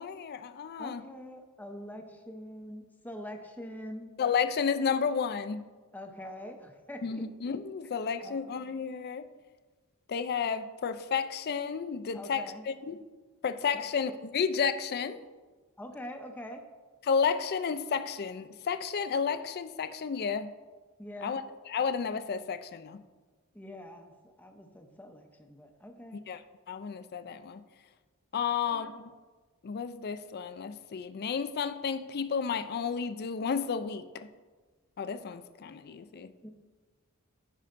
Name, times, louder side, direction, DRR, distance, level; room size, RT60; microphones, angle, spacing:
voice 1, 0.0-1.0 4.2-5.7 7.0-9.2 10.1-13.0 13.4-15.2 17.0-20.5 21.2-23.0 26.3-26.4 26.7-27.6 28.3-29.1 29.6-34.3 35.0-36.3, left 6 dB, 45° left, 11 dB, 0.4 m, -32 dB
voice 2, 0.8-4.1 5.9-7.2 8.2-8.4 12.1-12.6 13.7-13.8 15.8-16.6 21.0-21.4 23.5-26.2 28.5-28.9 36.4-36.5, left 1 dB, 10° left, 3 dB, 0.7 m, -44 dB
15.0 x 5.5 x 2.5 m, 1.4 s
head